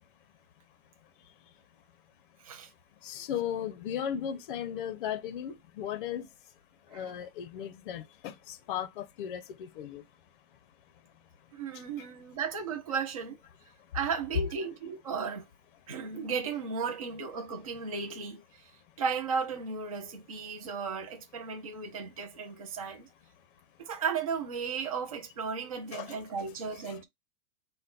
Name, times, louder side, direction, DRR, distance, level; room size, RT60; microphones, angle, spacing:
voice 1, 3.0-6.3 6.9-10.0 25.9-26.1 26.9-27.0, left 9 dB, 35° left, 0.6 m, -36 dB
voice 2, 11.5-13.4 13.9-15.5 15.9-18.7 19.0-23.1 23.8-27.0, right 5 dB, 25° right, 0.3 m, -35 dB
5.6 x 2.2 x 3.7 m
hypercardioid pair, 160°, 46 cm